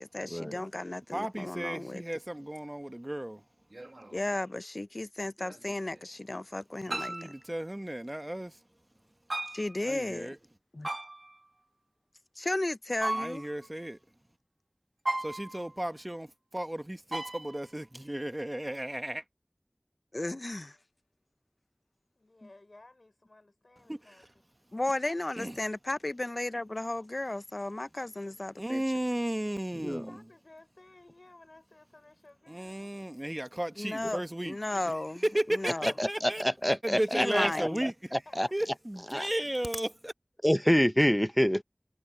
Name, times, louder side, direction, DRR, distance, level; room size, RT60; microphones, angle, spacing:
voice 1, 0.0-2.0 4.1-7.3 9.5-10.4 10.7-10.9 12.4-13.4 20.1-20.8 24.7-28.8 33.8-35.2 35.5-35.9 37.1-37.8, left 2 dB, 60° left, 0.4 m, -34 dB
voice 2, 1.1-3.4 6.9-8.5 9.8-10.4 13.1-14.0 15.2-16.3 16.5-19.2 23.9-24.0 25.4-25.5 28.6-30.2 32.5-34.6 35.2-36.4 36.8-37.9 38.5-40.1, right 1 dB, 30° right, 1.2 m, -34 dB
sound 1, 2.1-2.2 3.7-4.4 5.4-6.1 6.9-7.4 9.3-9.8 10.8-11.5 13.0-13.7 15.1-15.8 17.1-17.7, right 1 dB, 65° right, 1.1 m, -36 dB
voice 3, 22.2-24.3 30.1-32.9 37.8-37.9 38.2-38.5, left 2 dB, 85° left, 4.8 m, -56 dB
voice 4, 36.0-38.5 39.1-39.3 40.4-41.6, equal, 10° left, 0.6 m, -27 dB
wide cardioid pair, 40°, 0 cm